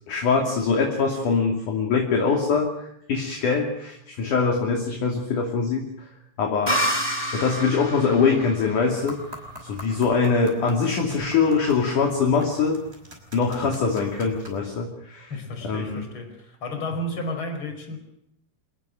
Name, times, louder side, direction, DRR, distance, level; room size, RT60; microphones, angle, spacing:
voice 1, 0.1-6.1 6.4-6.8 7.3-9.2 9.6-12.8 13.3-15.3 15.6-16.1, left 5 dB, 50° left, 1 dB, 3.9 m, -23 dB
sound 1, 6.7-10.2, equal, 10° left, 2.6 m, -29 dB
sound 2, 9.0-14.6, equal, 15° right, 5.7 m, -44 dB
voice 2, 15.3-18.0, left 1 dB, 30° left, 5 dB, 5.6 m, -32 dB
26.5 x 20.0 x 6.7 m, 0.79 s
omnidirectional pair, 5.1 m